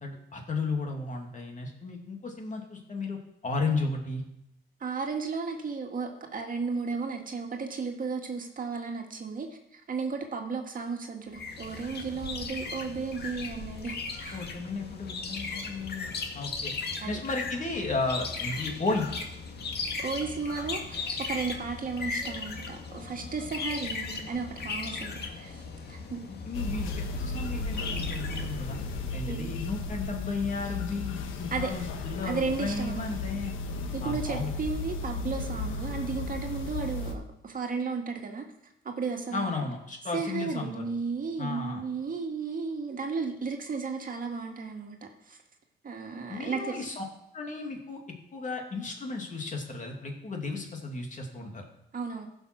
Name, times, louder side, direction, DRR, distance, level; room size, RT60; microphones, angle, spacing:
voice 1, 0.0-4.2 14.3-16.7 17.0-19.1 26.3-28.8 29.1-33.5 34.0-34.5 39.3-40.9 41.4-41.8 46.3-47.0 47.3-48.0 48.3-51.6, left 3 dB, 40° left, 2 dB, 2.6 m, -34 dB
voice 2, 4.8-14.5 17.0-17.2 20.0-25.6 25.9-26.2 29.2-29.5 31.5-31.7 32.2-33.1 33.9-38.5 38.8-39.5 40.1-45.4 45.8-46.8 51.9-52.3, right 4 dB, 45° right, 3 dB, 1.9 m, -34 dB
sound 1, 11.3-29.3, left 4 dB, 55° left, 1.8 m, -37 dB
sound 2, 26.5-37.1, left 3 dB, 85° left, 1.2 m, -35 dB
15.0 x 5.9 x 6.1 m, 0.82 s
cardioid pair, 90°, 20 cm